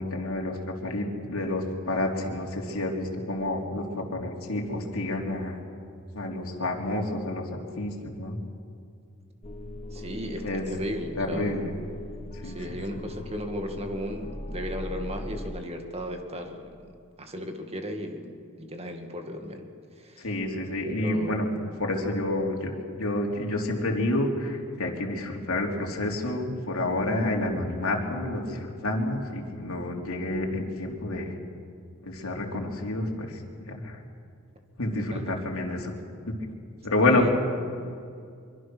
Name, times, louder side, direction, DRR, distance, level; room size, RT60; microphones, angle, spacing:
voice 1, 0.0-5.6 6.1-8.4 10.4-10.6 11.2-11.7 12.4-12.6 12.9-13.0 20.2-21.5 21.8-31.3 32.0-33.3 33.6-34.0 34.8-35.9 36.8-37.3, left 2 dB, 75° left, 0 dB, 3.5 m, -29 dB
sound 1, 9.4-15.6, left 1 dB, 25° left, 1.2 m, -40 dB
voice 2, 9.9-11.6 12.4-16.9 17.2-18.3 18.6-19.6 20.0-20.3 20.8-21.4 35.0-35.3 37.0-37.3, equal, 30° right, 4 dB, 2.2 m, -35 dB
25.0 x 24.0 x 6.3 m, 2.3 s
head